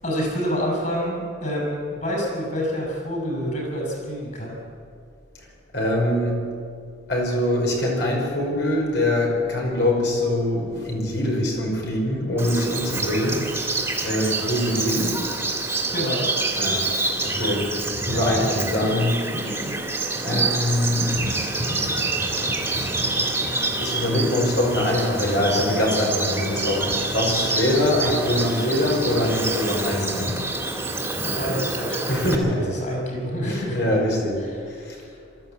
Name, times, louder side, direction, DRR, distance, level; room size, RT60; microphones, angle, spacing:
voice 1, 0.0-4.6 15.9-16.3 31.2-32.2 32.5-33.8 34.4-34.9, equal, 45° left, -1 dB, 6.9 m, -28 dB
voice 2, 5.7-6.4 7.1-13.4 14.0-15.2 16.6-16.8 17.2-19.2 20.2-21.2 23.8-30.3 32.1-32.7 33.4-34.4 34.8-35.0, left 1 dB, 60° left, -1 dB, 5.7 m, -23 dB
Bird vocalization bird call bird song, 12.4-32.3, right 2 dB, 10° right, 2.4 m, -27 dB
23.0 x 14.0 x 8.4 m, 2.4 s
head